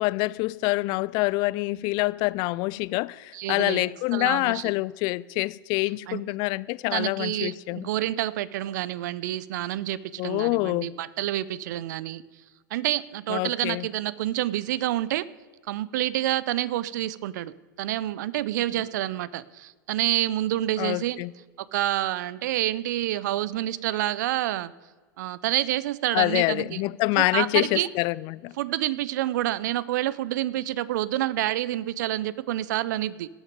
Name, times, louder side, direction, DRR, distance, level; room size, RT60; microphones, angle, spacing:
voice 1, 0.0-7.9 10.2-10.9 13.3-13.9 20.8-21.3 26.1-28.5, left 22 dB, 45° left, 0.4 m, -26 dB
voice 2, 3.3-4.6 6.1-6.2 6.9-12.2 12.7-15.3 15.7-17.5 17.8-21.2 21.6-24.7 25.2-26.6 27.2-27.9 28.6-33.3, right 14 dB, 65° right, 0.5 m, -28 dB
18.0 x 6.2 x 5.1 m
hypercardioid pair, 95°, 11 cm